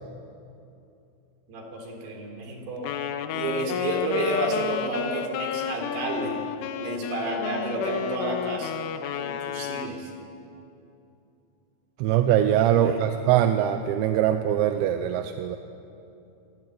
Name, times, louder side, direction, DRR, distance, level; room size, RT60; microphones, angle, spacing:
voice 1, 1.5-2.9 3.3-6.4 6.8-8.7 9.1-10.1 12.6-13.0, right 1 dB, 55° right, 1 dB, 5.6 m, -30 dB
Wind instrument woodwind instrument, 2.8-10.0, left 8 dB, 85° left, 3.6 m, -32 dB
voice 2, 12.0-15.6, right 11 dB, 75° right, 7 dB, 3.0 m, -22 dB
26.5 x 20.0 x 9.4 m, 2.7 s
omnidirectional pair, 5.7 m